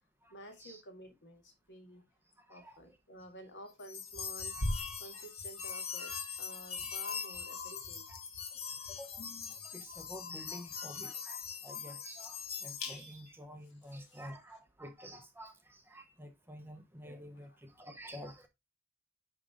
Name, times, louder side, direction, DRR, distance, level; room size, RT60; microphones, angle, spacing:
voice 1, 0.3-2.0 2.5-4.6 5.0-8.0 13.6-14.3 17.3-17.6, right 1 dB, 55° left, 1.9 m, -52 dB
voice 2, 2.4-2.8 5.0-5.2 7.9-8.2 8.5-8.6 8.9-18.5, equal, 10° right, 0.9 m, -50 dB
sound 1, 3.8-13.3, left 4 dB, 75° left, 2.1 m, -41 dB
10.0 x 3.8 x 3.6 m
head